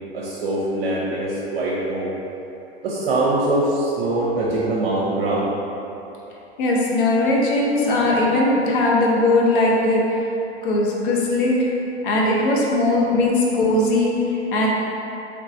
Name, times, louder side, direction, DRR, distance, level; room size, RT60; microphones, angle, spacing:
voice 1, 0.1-2.1 2.8-5.5, right 2 dB, 60° right, -6 dB, 0.6 m, -23 dB
voice 2, 6.6-10.2 10.6-11.7 12.0-14.7, left 2 dB, 50° left, -3 dB, 0.7 m, -19 dB
3.3 x 3.0 x 2.5 m, 2.9 s
figure-of-eight pair, 100°, 33 cm